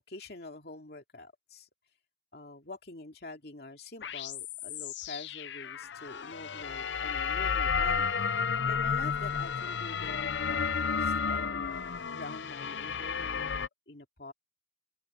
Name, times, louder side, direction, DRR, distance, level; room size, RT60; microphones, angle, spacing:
voice 1, 0.1-1.7 2.3-13.5 13.9-14.3, left 2 dB, 60° left, 2.6 m, -46 dB
sound 1, 4.0-13.7, left 6 dB, 80° left, 0.6 m, -32 dB
open air
head